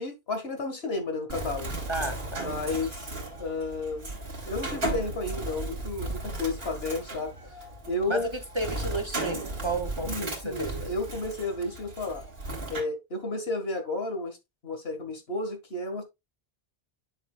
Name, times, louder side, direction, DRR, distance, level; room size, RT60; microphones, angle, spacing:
voice 1, 0.0-1.7 2.4-4.1 4.5-7.3 7.9-8.3 10.1-12.3 12.7-14.4 14.6-16.0, left 2 dB, 75° left, 2.0 m, -32 dB
Bird, 1.3-12.8, right 2 dB, 70° right, 2.6 m, -35 dB
voice 2, 1.9-2.5 8.1-10.9, right 2 dB, 30° right, 0.8 m, -32 dB
10.0 x 5.7 x 2.3 m
omnidirectional pair, 1.0 m